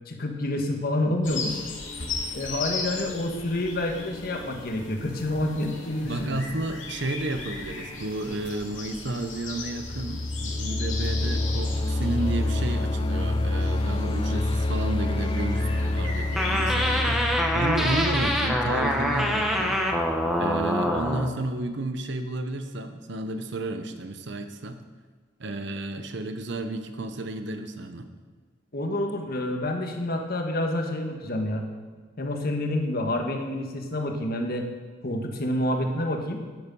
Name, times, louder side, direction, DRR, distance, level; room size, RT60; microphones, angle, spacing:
voice 1, 0.1-1.6 2.3-6.4 28.7-31.6 32.2-34.6 35.0-36.4, left 1 dB, 50° left, 3 dB, 1.4 m, -28 dB
sound 1, 1.2-17.2, left 3 dB, 75° left, 2.5 m, -37 dB
voice 2, 6.0-19.8 20.4-24.8 25.4-28.1, right 2 dB, 60° right, 8 dB, 0.9 m, -32 dB
sound 2, 9.6-20.3, left 2 dB, 25° left, 0.4 m, -28 dB
sound 3, 16.4-21.3, equal, ahead, 1.0 m, -25 dB
9.9 x 9.3 x 5.4 m, 1.4 s
head